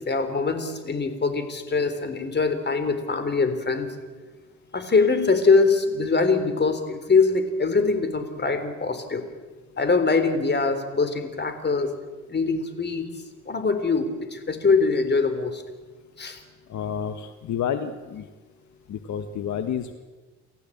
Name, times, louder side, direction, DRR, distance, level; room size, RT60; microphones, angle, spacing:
voice 1, 0.0-3.9 4.7-9.2 9.8-11.9 12.3-13.1 13.5-15.6 16.2-16.4, left 4 dB, 35° left, 9 dB, 3.8 m, -23 dB
voice 2, 16.7-18.3 18.9-19.9, left 8 dB, 70° left, 9 dB, 1.4 m, -30 dB
29.5 x 15.0 x 8.7 m, 1.3 s
cardioid pair, 90°, 30 cm